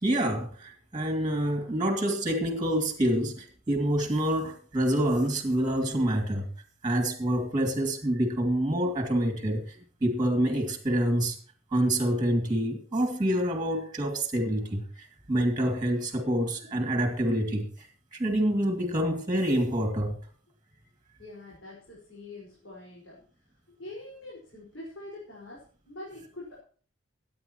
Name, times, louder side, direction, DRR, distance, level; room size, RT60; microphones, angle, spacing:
voice 1, 0.0-6.5 6.8-11.4 11.7-20.2, right 1 dB, 20° right, 2.5 m, -27 dB
voice 2, 21.2-23.2 23.8-26.6, left 2 dB, 70° left, 5.2 m, -44 dB
23.0 x 9.6 x 3.0 m
head